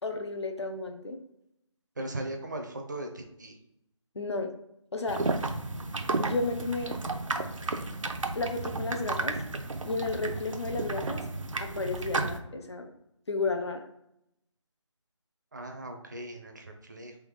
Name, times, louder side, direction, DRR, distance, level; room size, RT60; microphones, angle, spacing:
voice 1, 0.0-1.2 4.1-4.5 4.9-5.2 6.2-6.9 8.3-9.4 9.9-11.2 11.6-12.9 13.3-13.8, left 3 dB, 60° left, 5 dB, 0.6 m, -32 dB
voice 2, 2.0-3.6 15.5-17.1, right 1 dB, 35° right, 4 dB, 0.5 m, -38 dB
sound 1, 5.1-12.4, right 3 dB, 80° right, 0.5 m, -33 dB
3.5 x 3.0 x 3.3 m, 0.81 s
figure-of-eight pair, 160°, 16 cm